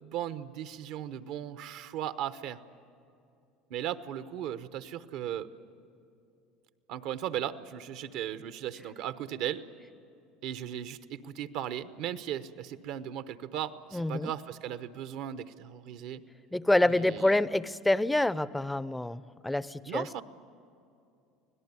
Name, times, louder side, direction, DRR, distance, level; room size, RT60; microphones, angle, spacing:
voice 1, 0.0-2.6 3.7-5.5 6.9-9.6 10.4-16.2 16.8-17.3 19.9-20.2, right 10 dB, 65° right, 12 dB, 0.9 m, -37 dB
voice 2, 13.9-14.3 16.5-20.2, left 1 dB, 10° left, 17 dB, 0.6 m, -27 dB
25.0 x 17.5 x 9.7 m, 2.6 s
supercardioid pair, 90°, 0 cm